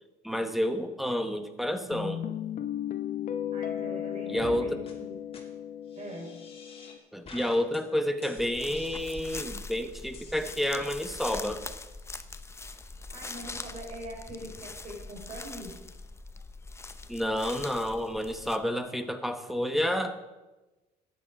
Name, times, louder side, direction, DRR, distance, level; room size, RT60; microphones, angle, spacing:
voice 1, 0.2-2.2 4.3-4.8 7.1-11.6 17.1-20.1, equal, ahead, 6 dB, 1.0 m, -30 dB
Guitar, 1.9-7.0, left 10 dB, 55° left, 0.9 m, -35 dB
voice 2, 3.5-5.2 6.0-6.3 13.1-15.7, right 1 dB, 40° right, 1 dB, 4.5 m, -42 dB
sound 1, 4.4-4.6 4.9-5.0 5.3-5.4 5.9-7.0 7.3-7.8 8.2-9.6 10.1-11.1, left 4 dB, 35° left, 2.7 m, -49 dB
sound 2, 8.4-18.6, left 3 dB, 15° left, 0.7 m, -42 dB
13.5 x 9.8 x 4.9 m, 1.1 s
cardioid pair, 110°, 17 cm